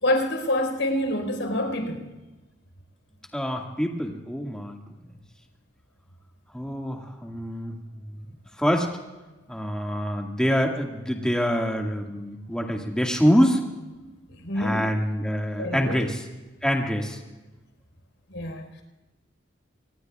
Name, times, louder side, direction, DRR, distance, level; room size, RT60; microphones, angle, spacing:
voice 1, 0.0-2.0 14.0-14.1 14.4-14.9 15.6-16.0 18.3-18.7, left 1 dB, 85° left, 4.4 m, -26 dB
voice 2, 3.3-4.8 6.5-7.7 8.6-8.9 9.5-13.6 14.6-16.2 16.6-17.2, equal, 5° left, 1.9 m, -25 dB
25.0 x 21.0 x 2.4 m
head